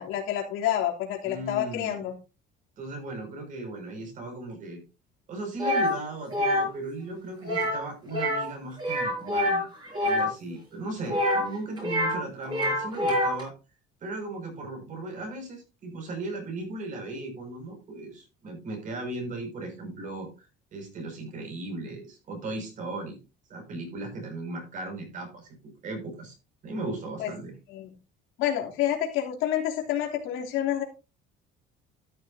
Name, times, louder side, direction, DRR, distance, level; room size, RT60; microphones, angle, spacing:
voice 1, 0.0-2.1 27.2-27.3 27.7-27.9 28.4-30.8, left 11 dB, 85° left, 0 dB, 3.1 m, -28 dB
voice 2, 1.2-2.0 2.8-4.8 5.3-9.7 10.0-13.5 14.0-23.2 23.5-25.5 25.8-26.3 26.6-27.5, right 2 dB, 40° right, 3 dB, 5.9 m, -37 dB
sound 1, 5.6-5.9 6.3-6.7 7.4-7.8 8.1-8.5 8.8-10.3 11.1-12.2 12.4-13.4, left 1 dB, 20° right, 5.4 m, -26 dB
13.0 x 11.0 x 2.7 m, 0.30 s
cardioid pair, 175°, 20 cm